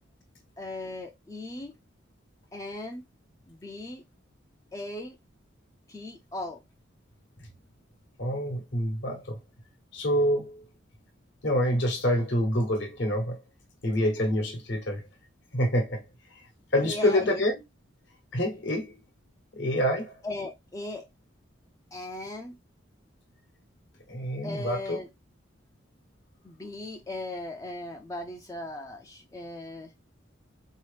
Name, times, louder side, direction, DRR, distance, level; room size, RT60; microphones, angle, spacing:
voice 1, 0.6-1.7 2.5-3.0 3.5-4.0 4.7-5.2 5.9-6.6 16.8-17.4 20.2-21.1 21.9-22.5 24.4-25.1 26.4-29.9, left 2 dB, 15° left, 0.3 m, -37 dB
voice 2, 8.2-9.4 9.9-10.6 11.4-13.4 13.8-15.0 15.5-16.0 16.7-17.5 18.3-19.0 19.5-20.2 24.1-25.0, equal, 60° left, 1.0 m, -26 dB
3.8 x 2.8 x 3.2 m
head